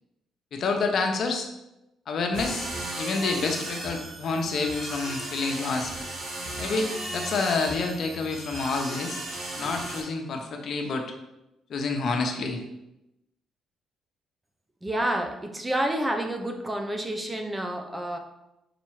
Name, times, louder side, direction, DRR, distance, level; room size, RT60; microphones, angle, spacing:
voice 1, 0.5-1.5 2.1-2.7 3.0-5.9 6.6-9.2 9.6-11.0 11.7-12.6, left 3 dB, 60° left, 3 dB, 1.0 m, -28 dB
sound 1, 2.3-10.0, right 1 dB, 70° right, 2.0 m, -35 dB
voice 2, 14.8-18.2, right 1 dB, 15° right, 3 dB, 0.8 m, -29 dB
5.2 x 4.3 x 4.7 m, 0.91 s
cardioid pair, 90°, 0 cm